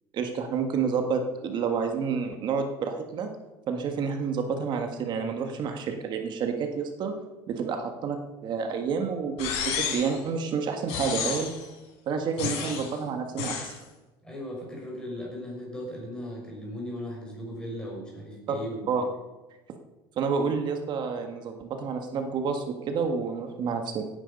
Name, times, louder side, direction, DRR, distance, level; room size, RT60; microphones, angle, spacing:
voice 1, 0.1-3.3 3.7-7.1 7.5-11.5 12.1-13.8 18.5-18.6 18.9-19.0 20.2-24.0, right 5 dB, 40° right, 5 dB, 1.7 m, -29 dB
sound 1, 9.4-10.2 10.9-11.6 12.4-12.9 13.4-13.7, left 7 dB, 70° left, 4.4 m, -31 dB
voice 2, 14.2-18.9, equal, 5° left, -2 dB, 5.9 m, -37 dB
17.0 x 10.5 x 5.5 m, 1.1 s
cardioid pair, 150°, 11 cm